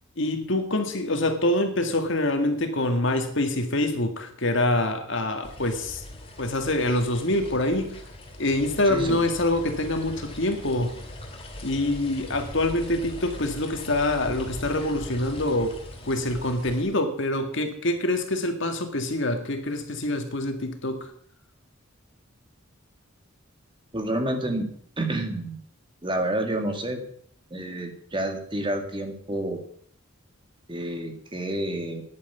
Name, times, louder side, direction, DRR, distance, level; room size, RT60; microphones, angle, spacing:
voice 1, 0.2-6.0 6.4-8.0 8.4-11.0 11.6-15.8 16.1-21.1, left 1 dB, 60° left, 6 dB, 2.0 m, -25 dB
sound 1, 5.4-16.8, left 1 dB, 30° left, 2.5 m, -41 dB
voice 2, 8.8-9.2 23.9-24.7 25.0-25.6 26.0-27.0 27.5-29.6 30.7-32.0, right 1 dB, 25° right, 5 dB, 1.9 m, -29 dB
10.5 x 9.4 x 8.3 m, 0.63 s
head